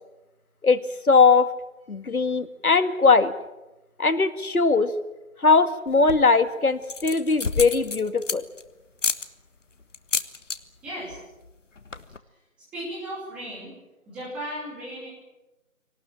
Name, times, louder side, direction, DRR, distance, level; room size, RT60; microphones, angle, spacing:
voice 1, 1.1-1.5 1.9-3.3 4.0-4.9 5.4-8.4, left 4 dB, 85° left, 11 dB, 2.1 m, -20 dB
sound 1, 5.9-6.4 6.8-8.6 9.0-9.3 9.9-10.6 10.9-11.2 11.4-11.5 11.8-12.2, left 4 dB, 60° left, 1.6 m, -29 dB
voice 2, 10.8-11.2 12.7-13.7 14.1-15.1, equal, 5° right, -6 dB, 2.6 m, -35 dB
26.0 x 18.5 x 9.0 m, 1.0 s
figure-of-eight pair, 170°, 42 cm